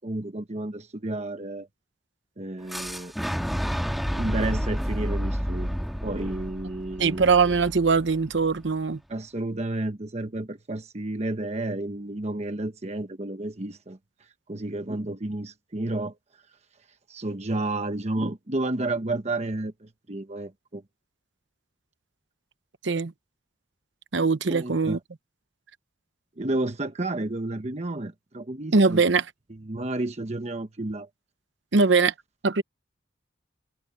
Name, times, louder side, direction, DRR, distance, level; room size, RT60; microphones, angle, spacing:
voice 1, 0.0-1.7 2.4-3.1 4.1-5.8 6.0-7.2 9.1-16.2 17.1-20.8 24.5-25.0 26.4-29.0 29.5-31.1, right 2 dB, 35° right, 1.1 m, -31 dB
Boom, 2.7-8.6, equal, ahead, 1.6 m, -30 dB
voice 2, 7.0-9.0 22.8-23.1 24.1-25.0 28.7-29.2 31.7-32.1 32.4-32.6, right 4 dB, 85° right, 0.9 m, -21 dB
head